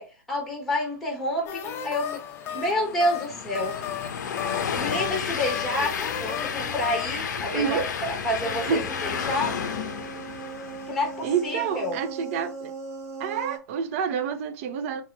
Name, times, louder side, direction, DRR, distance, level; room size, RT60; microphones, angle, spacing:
voice 1, 0.0-2.2 2.5-3.7 4.8-9.6 10.9-12.0, left 1 dB, ahead, 1.0 m, -29 dB
sound 1, 1.5-7.3, left 9 dB, 25° left, 0.5 m, -35 dB
Train, 1.9-11.4, left 7 dB, 65° left, 0.6 m, -32 dB
voice 2, 7.5-7.9 8.7-8.8 11.2-12.7 13.2-15.0, right 7 dB, 45° right, 0.6 m, -28 dB
sound 2, 8.4-13.6, right 4 dB, 25° right, 1.2 m, -39 dB
3.0 x 2.8 x 3.2 m
hypercardioid pair, 125°, 10 cm